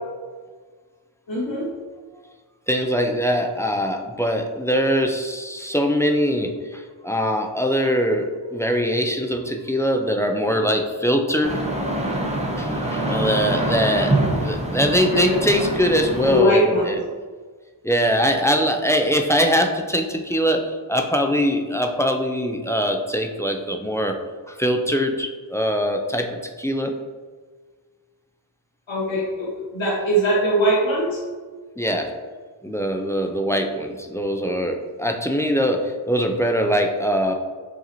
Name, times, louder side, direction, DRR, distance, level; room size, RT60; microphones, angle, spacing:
voice 1, 1.3-1.7 15.1-15.4 16.2-17.0 28.9-31.2, equal, 75° left, -5 dB, 1.2 m, -21 dB
voice 2, 2.7-11.7 12.6-17.0 17.8-24.2 24.5-27.0 31.8-32.1 32.6-37.3, equal, 5° left, 3 dB, 0.3 m, -22 dB
sound 1, 11.4-16.4, right 1 dB, 15° right, 0.7 m, -25 dB
4.9 x 2.9 x 2.6 m, 1.5 s
wide cardioid pair, 50°, 46 cm